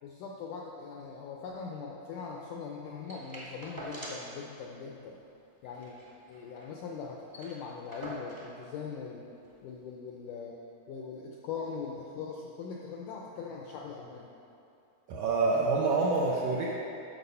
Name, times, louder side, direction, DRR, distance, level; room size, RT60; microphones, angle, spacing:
voice 1, 0.0-5.2 5.6-6.0 6.3-9.3 9.6-10.6 10.9-14.3, left 5 dB, 80° left, -1 dB, 1.8 m, -41 dB
sound 1, 3.1-4.4 4.7-4.8 5.1-5.2 5.6-6.7 7.0-7.1 7.3-8.6 9.4-9.5, right 1 dB, 20° right, 0.6 m, -44 dB
voice 2, 15.1-16.7, right 3 dB, 80° right, -4 dB, 1.7 m, -27 dB
10.5 x 6.5 x 5.5 m, 2.8 s
omnidirectional pair, 4.4 m